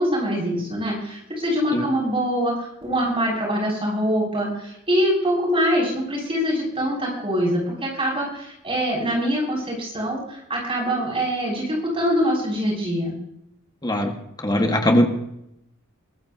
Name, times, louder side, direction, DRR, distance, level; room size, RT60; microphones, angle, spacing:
voice 1, 0.0-13.2, equal, 25° right, -3 dB, 7.1 m, -24 dB
voice 2, 13.8-14.1 14.4-15.1, left 1 dB, 20° left, 4 dB, 1.8 m, -20 dB
23.5 x 15.5 x 2.9 m, 0.79 s
head